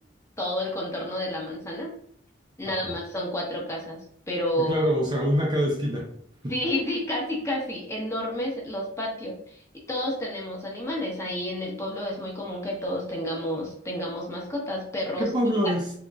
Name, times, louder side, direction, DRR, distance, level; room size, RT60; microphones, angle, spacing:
voice 1, 0.4-1.9 2.6-4.0 4.3-4.9 6.5-9.6 9.9-15.3 15.6-15.7, left 1 dB, 15° left, -2 dB, 0.8 m, -30 dB
voice 2, 4.6-6.1 6.4-6.5 15.2-15.9, equal, 25° right, -2 dB, 0.6 m, -25 dB
3.7 x 2.9 x 2.3 m, 0.65 s
head